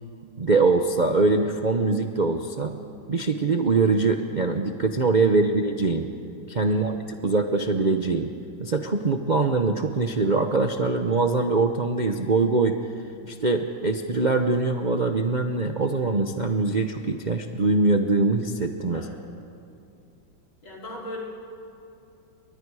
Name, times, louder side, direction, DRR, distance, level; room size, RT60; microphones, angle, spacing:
voice 1, 0.4-2.7 3.1-6.1 6.5-7.0 7.2-8.3 8.6-12.8 13.2-19.1, right 3 dB, 75° right, 4 dB, 0.4 m, -23 dB
voice 2, 6.7-7.0 18.9-19.2 20.6-21.2, equal, 75° left, -3 dB, 5.1 m, -39 dB
29.5 x 23.5 x 4.8 m, 2.6 s
omnidirectional pair, 2.2 m